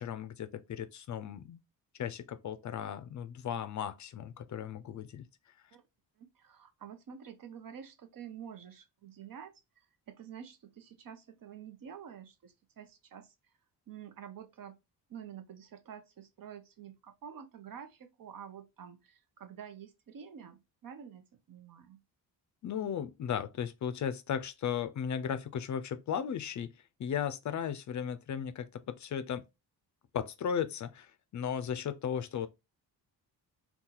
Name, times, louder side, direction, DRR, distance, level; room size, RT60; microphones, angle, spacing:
voice 1, 0.0-1.6 2.0-5.3 22.6-26.7 27.0-29.4 30.1-32.5, left 8 dB, 45° left, 0.4 m, -36 dB
voice 2, 6.2-13.3 13.9-14.8 15.1-22.0, right 8 dB, 55° right, 0.7 m, -49 dB
2.7 x 2.3 x 3.7 m
cardioid pair, 70°, 41 cm